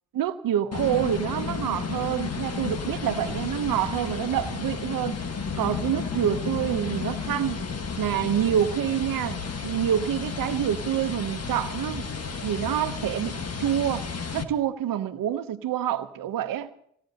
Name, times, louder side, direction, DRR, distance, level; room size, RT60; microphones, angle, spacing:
voice 1, 0.1-5.2 5.6-7.6 8.0-12.0 12.4-14.1 14.3-16.7, right 10 dB, 80° right, 0.9 m, -27 dB
sound 1, 0.7-14.4, left 5 dB, 45° left, 1.5 m, -32 dB
25.5 x 18.0 x 2.9 m
cardioid pair, 55°, 34 cm